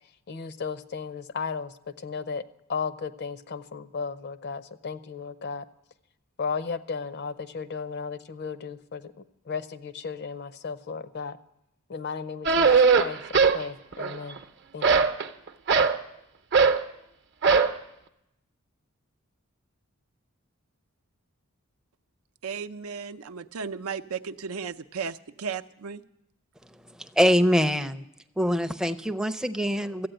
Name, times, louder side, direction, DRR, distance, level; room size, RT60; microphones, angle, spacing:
voice 1, 0.3-2.4 2.7-5.7 6.4-11.4 11.9-14.4 14.7-15.1, left 5 dB, 50° left, 13 dB, 0.6 m, -35 dB
sound 1, 12.4-13.6 13.9-14.4 14.8-16.0 16.5-16.8 17.4-17.8, right 5 dB, 55° right, 0.8 m, -20 dB
voice 2, 22.4-26.0, right 6 dB, 85° right, 9 dB, 0.6 m, -35 dB
voice 3, 27.0-28.0 28.4-30.1, equal, 5° right, 8 dB, 0.5 m, -24 dB
14.5 x 8.5 x 9.0 m, 0.83 s
head